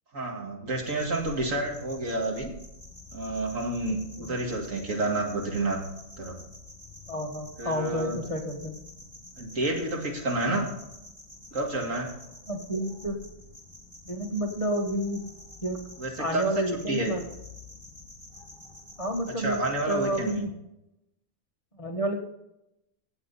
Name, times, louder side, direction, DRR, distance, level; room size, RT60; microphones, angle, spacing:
voice 1, 0.1-2.5 3.1-5.8 6.2-6.4 7.6-8.2 9.4-10.7 11.5-12.1 16.0-16.5 16.9-17.1 19.4-20.4, right 2 dB, 80° right, 1 dB, 2.6 m, -29 dB
sound 1, 0.8-20.4, left 2 dB, 25° right, 4.4 m, -48 dB
voice 2, 7.1-8.7 12.5-13.2 14.0-15.2 15.6-15.8 16.2-17.2 19.0-19.6 19.9-20.5 21.8-22.1, right 1 dB, 25° left, 2 dB, 1.5 m, -30 dB
17.0 x 8.0 x 4.2 m, 0.87 s
omnidirectional pair, 1.4 m